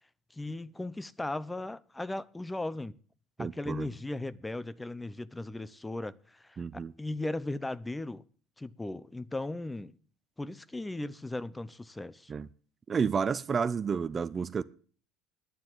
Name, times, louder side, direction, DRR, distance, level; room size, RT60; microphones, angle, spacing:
voice 1, 0.3-3.0 3.4-8.2 8.6-9.9 10.4-12.3, left 2 dB, 10° left, 0.7 m, -37 dB
voice 2, 3.4-3.9 6.6-6.9 12.3-12.5 12.9-14.6, right 6 dB, 30° right, 0.6 m, -30 dB
9.5 x 9.2 x 7.9 m
supercardioid pair, 95°, 0 cm